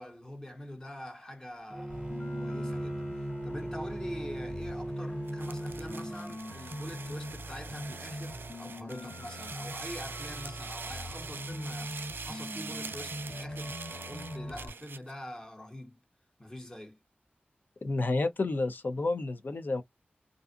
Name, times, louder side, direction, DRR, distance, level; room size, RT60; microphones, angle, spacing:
voice 1, 0.0-16.0 16.4-17.0, equal, 15° left, 1.0 m, -45 dB
Bowed string instrument, 1.7-6.2, right 1 dB, 10° right, 0.7 m, -38 dB
sound 1, 1.9-14.7, equal, 80° left, 1.5 m, -42 dB
sound 2, 5.3-15.1, right 4 dB, 70° right, 0.4 m, -44 dB
voice 2, 17.8-19.8, left 3 dB, 55° left, 0.6 m, -30 dB
2.5 x 2.4 x 2.5 m
wide cardioid pair, 70°, 4 cm